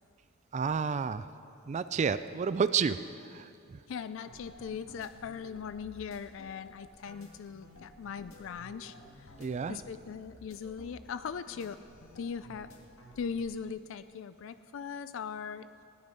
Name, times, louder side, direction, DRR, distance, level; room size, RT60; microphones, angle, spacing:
voice 1, 0.5-1.2 1.7-3.0 3.3-3.8 9.4-9.8, right 6 dB, 35° right, 13 dB, 0.3 m, -30 dB
voice 2, 3.9-9.3 9.7-11.8 12.2-12.7 13.2-15.7, left 6 dB, 65° left, 12 dB, 0.4 m, -40 dB
sound 1, 4.1-13.4, left 1 dB, 85° left, 2.0 m, -54 dB
16.5 x 10.5 x 5.3 m, 2.5 s
head